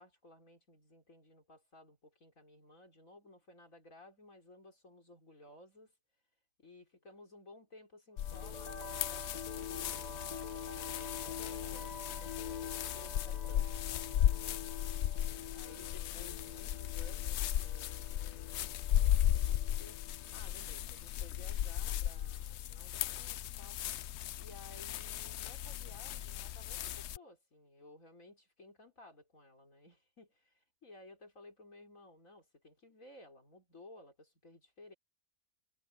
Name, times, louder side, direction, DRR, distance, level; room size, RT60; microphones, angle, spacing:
voice 1, 0.0-5.9 6.6-10.2 10.7-14.2 14.8-23.8 24.4-34.9, left 2 dB, 50° left, 5.0 m, -57 dB
sound 1, 8.2-27.2, left 11 dB, 90° left, 0.6 m, -36 dB
sound 2, 8.2-22.3, left 5 dB, 25° left, 1.5 m, -47 dB
omnidirectional pair, 1.8 m